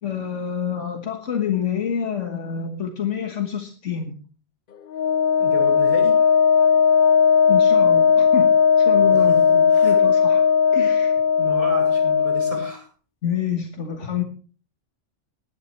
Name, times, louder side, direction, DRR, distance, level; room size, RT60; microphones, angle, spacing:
voice 1, 0.0-4.1 7.5-9.6 9.8-10.4 10.7-11.1 13.2-14.2, left 8 dB, 75° left, 3 dB, 1.7 m, -27 dB
Wind instrument woodwind instrument, 4.9-12.7, left 6 dB, 50° left, 0.8 m, -17 dB
voice 2, 5.4-6.2 9.1-10.0 11.4-12.9, right 1 dB, 30° right, 1 dB, 5.5 m, -33 dB
20.0 x 9.9 x 3.2 m, 0.39 s
omnidirectional pair, 1.3 m